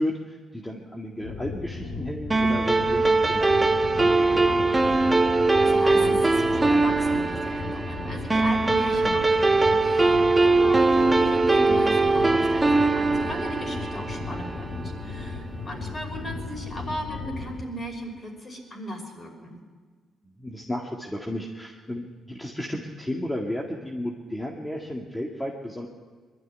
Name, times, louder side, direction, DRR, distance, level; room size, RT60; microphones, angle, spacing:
voice 1, 0.0-5.1 20.4-25.9, left 1 dB, 10° left, -1 dB, 1.9 m, -33 dB
sound 1, 1.2-17.6, left 3 dB, 70° left, 2.5 m, -36 dB
sound 2, 2.3-15.1, right 3 dB, 15° right, 1.1 m, -21 dB
voice 2, 5.6-19.6, equal, 35° left, 2 dB, 5.6 m, -37 dB
21.5 x 12.5 x 9.9 m, 1.5 s
cardioid pair, 90°, 0 cm